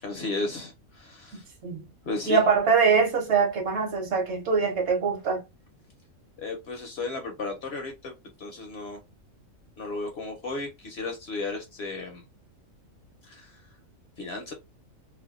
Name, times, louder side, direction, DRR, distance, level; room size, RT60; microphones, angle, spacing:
voice 1, 0.0-1.4 2.1-2.4 6.4-8.1 8.4-9.0 9.8-12.2 13.2-13.6 14.2-14.5, left 3 dB, 60° left, 0.7 m, -34 dB
voice 2, 2.3-5.4, right 5 dB, 60° right, 0.9 m, -23 dB
2.5 x 2.1 x 2.4 m
omnidirectional pair, 1.5 m